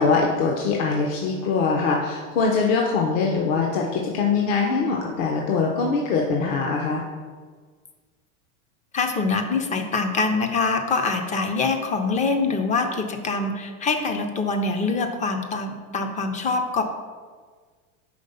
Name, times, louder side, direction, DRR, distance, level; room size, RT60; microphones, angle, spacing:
voice 1, 0.0-7.0, left 4 dB, 60° left, 0 dB, 0.9 m, -22 dB
voice 2, 8.9-16.8, left 3 dB, 20° left, 6 dB, 0.4 m, -24 dB
5.2 x 3.5 x 5.4 m, 1.5 s
supercardioid pair, 120°, 42 cm